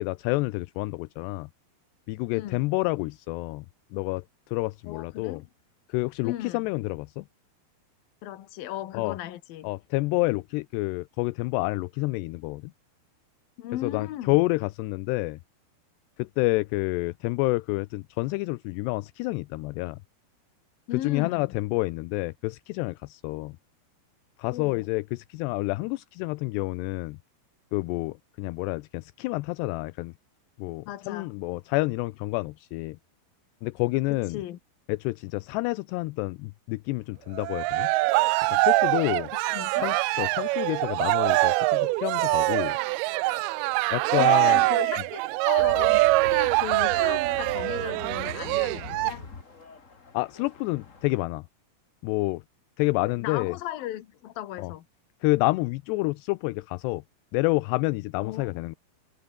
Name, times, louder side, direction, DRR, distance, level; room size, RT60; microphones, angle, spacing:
voice 1, 0.0-1.5 2.1-3.7 3.9-5.4 5.9-7.3 8.9-9.2 9.6-12.7 13.8-15.4 16.2-20.0 21.0-23.6 24.4-27.2 27.7-30.1 30.6-33.0 33.6-34.4 34.9-37.9 38.5-39.3 39.8-42.8 43.9-44.6 50.1-51.4 52.0-52.4 52.8-53.6 54.6-54.7 55.2-57.0 57.3-58.8, left 23 dB, 80° left, 2.7 m, -28 dB
voice 2, 4.9-5.5 6.2-6.6 8.2-9.7 13.6-14.4 20.9-21.5 24.5-24.9 30.9-31.3 34.1-34.6 39.3-39.9 44.2-49.2 53.0-54.9 58.2-58.5, left 13 dB, 65° left, 3.0 m, -36 dB
Cheering, 37.3-49.1, right 22 dB, 85° right, 2.2 m, -24 dB
sound 1, 45.6-51.2, left 4 dB, 30° left, 1.4 m, -43 dB
omnidirectional pair, 5.0 m